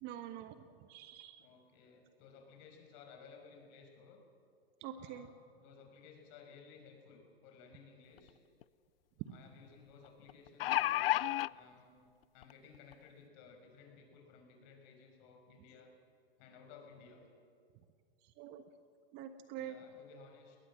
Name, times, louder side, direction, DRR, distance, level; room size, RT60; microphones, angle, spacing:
voice 1, 0.0-0.6 0.9-1.4 4.8-5.3 18.4-18.6 19.1-19.8, right 10 dB, 35° right, 10 dB, 1.3 m, -46 dB
voice 2, 1.4-4.2 4.9-8.4 9.2-12.1 12.3-15.9 16.4-17.3 19.5-20.6, left 5 dB, 40° left, 3 dB, 5.7 m, -58 dB
sound 1, 8.2-8.3 8.6-8.7 10.3-11.5 12.4-12.5 12.9-13.0, left 14 dB, 65° left, 0.5 m, -31 dB
21.5 x 19.5 x 7.5 m, 2.3 s
hypercardioid pair, 125°, 32 cm